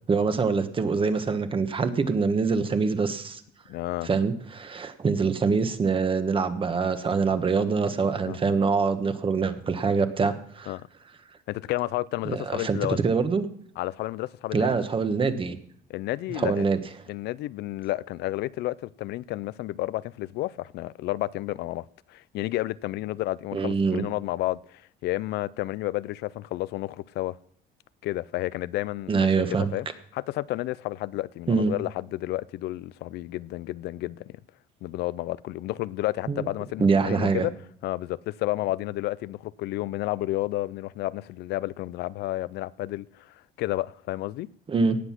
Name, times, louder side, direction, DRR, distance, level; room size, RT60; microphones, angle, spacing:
voice 1, 0.1-3.4 4.0-10.7 12.2-12.8 13.0-13.5 14.5-15.6 16.3-16.8 23.5-24.0 29.1-29.7 31.5-31.7 36.3-36.5 36.8-37.5 44.7-45.0, right 5 dB, 30° right, 1.4 m, -24 dB
voice 2, 3.7-4.1 8.2-8.4 10.7-10.8 11.5-13.0 13.8-14.8 15.9-16.7 17.1-27.4 28.0-29.3 29.7-29.9 30.1-34.3 34.8-37.5 37.8-44.5, left 17 dB, 75° left, 0.4 m, -31 dB
18.0 x 7.9 x 6.0 m
cardioid pair, 110°, 17 cm